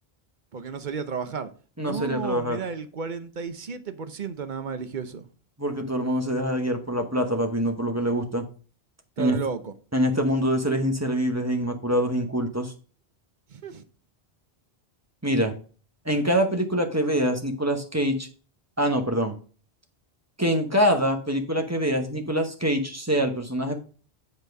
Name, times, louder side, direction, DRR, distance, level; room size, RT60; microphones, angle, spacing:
voice 1, 0.5-1.5 1.8-5.3 9.2-9.7 13.5-13.8, right 5 dB, 50° right, 0.9 m, -33 dB
voice 2, 1.8-2.6 5.6-8.4 9.2-9.4 9.9-12.7 15.2-15.5 16.0-18.3 18.8-19.3 20.4-23.7, equal, 15° right, 1.1 m, -25 dB
8.0 x 4.4 x 5.3 m
omnidirectional pair, 1.1 m